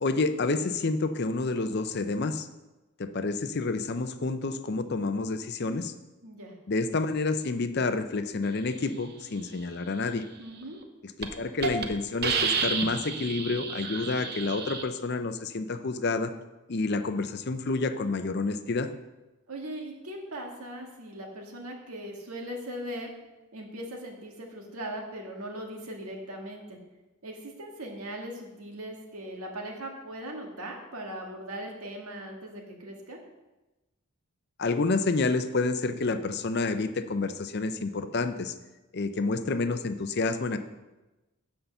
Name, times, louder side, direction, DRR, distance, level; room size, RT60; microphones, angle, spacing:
voice 1, 0.0-2.5 3.0-5.9 6.7-10.2 11.2-16.3 16.7-18.9 34.6-38.5 38.9-40.6, left 3 dB, 45° left, 10 dB, 0.5 m, -29 dB
voice 2, 6.2-6.6 10.4-10.8 19.5-23.1 23.5-26.8 27.2-33.2, right 1 dB, 80° right, 1 dB, 1.8 m, -39 dB
Hiss, 10.6-10.8 11.2-11.3 11.6-11.8 12.2-14.8, right 5 dB, 45° right, 0.8 m, -30 dB
8.0 x 5.7 x 6.8 m, 1.1 s
head